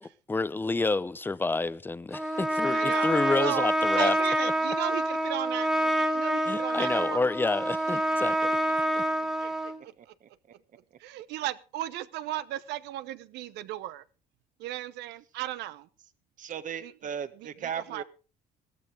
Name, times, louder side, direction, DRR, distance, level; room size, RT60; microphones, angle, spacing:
voice 1, 0.0-4.2 4.4-4.5 6.4-8.4, left 3 dB, 10° left, 0.6 m, -29 dB
Trumpet, 2.1-9.8, right 1 dB, 5° right, 2.0 m, -27 dB
voice 2, 2.7-3.7 3.9-5.7 6.1-7.2 9.4-9.5 9.8-9.9 11.0-14.0 14.6-15.8 16.8-16.9 17.9-18.0, right 14 dB, 85° right, 0.9 m, -35 dB
voice 3, 10.0-10.3 16.4-18.0, right 8 dB, 50° right, 1.6 m, -37 dB
15.5 x 14.0 x 3.7 m
cardioid pair, 110°, 17 cm